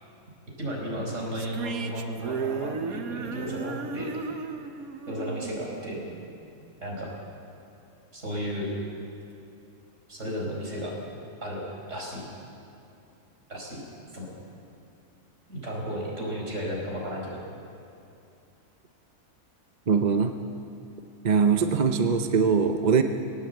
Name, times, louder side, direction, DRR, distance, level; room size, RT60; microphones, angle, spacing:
voice 1, 0.6-4.5 5.1-6.0 6.8-7.1 8.1-8.7 10.1-10.9 11.4-11.6 11.9-12.3 13.5-13.8 14.1-14.3 15.5-17.4, equal, 60° right, -2 dB, 5.3 m, -34 dB
sound 1, 1.3-6.7, right 5 dB, 90° right, 1.5 m, -35 dB
voice 2, 19.9-20.3 21.2-23.0, right 5 dB, 40° right, 6 dB, 0.8 m, -22 dB
19.0 x 18.0 x 8.2 m, 2.6 s
omnidirectional pair, 1.5 m